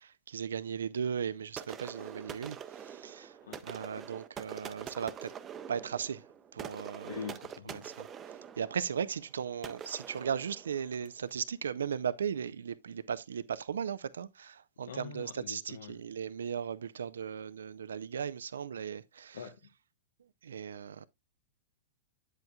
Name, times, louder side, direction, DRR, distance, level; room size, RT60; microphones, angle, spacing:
voice 1, 0.0-3.4 3.6-5.3 5.7-6.2 6.5-7.1 7.7-8.1 8.6-19.4 20.4-21.1, right 7 dB, 80° right, 0.5 m, -37 dB
sound 1, 1.6-11.2, right 8 dB, 25° right, 0.7 m, -45 dB
voice 2, 7.0-7.9 14.9-16.0 19.3-19.6, left 7 dB, 75° left, 1.0 m, -44 dB
9.0 x 8.0 x 2.3 m
hypercardioid pair, 110°, 0 cm